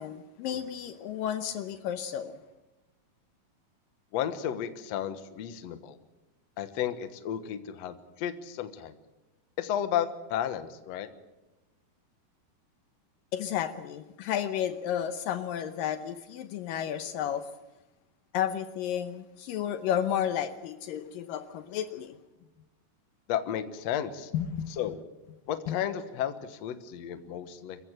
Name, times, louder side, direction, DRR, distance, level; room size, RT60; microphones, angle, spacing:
voice 1, 0.0-2.4 13.3-17.5 18.3-22.1 24.3-24.7, left 9 dB, 75° left, 10 dB, 2.4 m, -32 dB
voice 2, 4.1-6.0 6.6-9.0 9.6-11.1 23.3-24.3 24.7-25.0 25.5-27.8, left 10 dB, 60° left, 10 dB, 2.0 m, -33 dB
25.0 x 15.0 x 9.0 m, 1.0 s
omnidirectional pair, 4.3 m